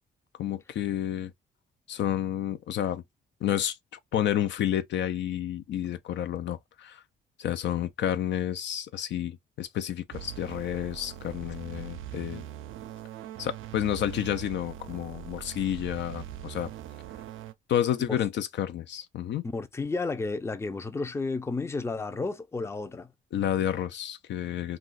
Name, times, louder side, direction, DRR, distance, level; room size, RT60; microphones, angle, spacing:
voice 1, 0.4-1.3 1.9-3.0 3.4-3.8 4.1-7.0 7.4-12.4 13.4-16.7 17.7-19.4 23.3-24.8, left 11 dB, 65° left, 0.5 m, -30 dB
sound 1, 10.1-17.5, right 11 dB, 85° right, 0.5 m, -42 dB
voice 2, 19.4-23.1, left 3 dB, 15° left, 0.5 m, -32 dB
2.4 x 2.3 x 3.8 m
cardioid pair, 90°, 20 cm